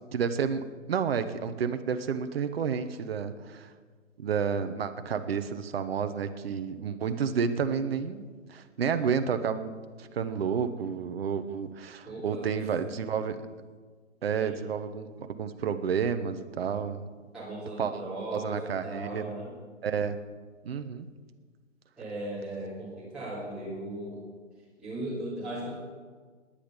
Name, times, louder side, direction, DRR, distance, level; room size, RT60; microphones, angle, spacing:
voice 1, 0.1-3.7 4.2-13.4 14.2-17.0 17.8-18.0 18.3-19.3 19.8-20.2 20.6-21.1, right 6 dB, 50° right, 9 dB, 1.1 m, -30 dB
voice 2, 12.0-12.6 14.4-14.5 17.3-19.5 22.0-24.2 24.8-25.8, right 1 dB, ahead, -13 dB, 3.0 m, -37 dB
18.0 x 10.5 x 5.3 m, 1.5 s
figure-of-eight pair, 140°, 38 cm